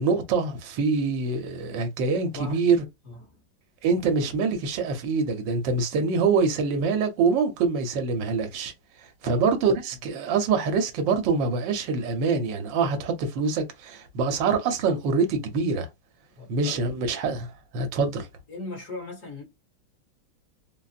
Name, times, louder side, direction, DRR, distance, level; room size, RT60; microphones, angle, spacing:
voice 1, 0.0-2.8 3.8-8.7 9.2-15.9 16.5-18.3, right 4 dB, 70° right, 1.4 m, -25 dB
voice 2, 3.0-3.4 9.2-9.5 16.3-16.9 18.5-19.4, left 3 dB, 45° left, 1.5 m, -38 dB
4.0 x 2.0 x 2.4 m
omnidirectional pair, 2.2 m